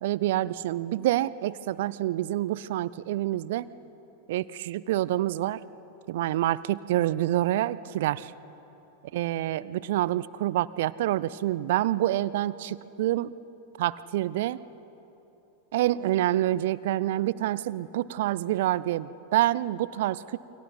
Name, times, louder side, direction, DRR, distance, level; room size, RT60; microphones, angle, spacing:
voice 1, 0.0-3.7 4.3-5.6 6.1-8.3 9.1-13.3 13.8-14.6 15.7-20.4, right 14 dB, 60° right, 18 dB, 0.5 m, -27 dB
29.0 x 24.0 x 4.4 m, 3.0 s
figure-of-eight pair, 90°, 0 cm